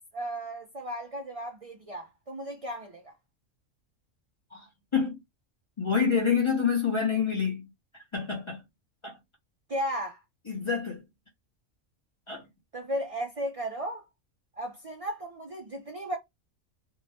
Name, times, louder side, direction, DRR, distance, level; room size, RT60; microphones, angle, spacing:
voice 1, 0.1-3.1 9.7-10.2 12.7-14.0 14.6-16.2, right 1 dB, 60° right, 0.3 m, -35 dB
voice 2, 5.8-7.7 8.1-8.6 9.0-9.2 10.5-11.0 12.3-12.4, left 6 dB, 30° left, 0.7 m, -27 dB
2.8 x 2.1 x 2.8 m
omnidirectional pair, 1.3 m